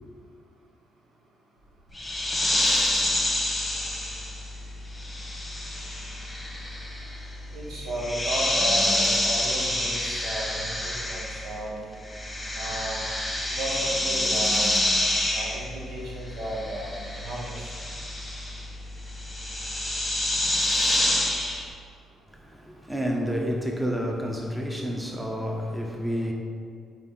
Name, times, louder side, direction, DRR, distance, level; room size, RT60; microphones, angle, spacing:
sound 1, 1.9-11.7 11.9-21.7, left 1 dB, 10° left, 1.3 m, -28 dB
voice 1, 7.5-12.0 12.5-13.1 13.5-14.7 15.3-17.7, right 1 dB, 85° right, 1.4 m, -34 dB
voice 2, 22.3-26.3, equal, 5° right, 0.8 m, -29 dB
4.4 x 4.2 x 5.5 m
cardioid pair, 90°, 0 cm